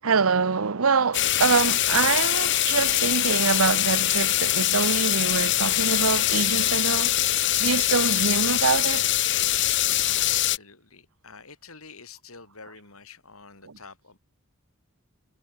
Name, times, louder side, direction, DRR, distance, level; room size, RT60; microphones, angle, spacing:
voice 1, 0.0-7.1 7.6-9.0, right 5 dB, 70° right, 0.8 m, -25 dB
sound 1, 1.1-10.6, left 14 dB, 55° left, 1.3 m, -23 dB
voice 2, 9.4-14.2, left 4 dB, 75° left, 5.7 m, -48 dB
head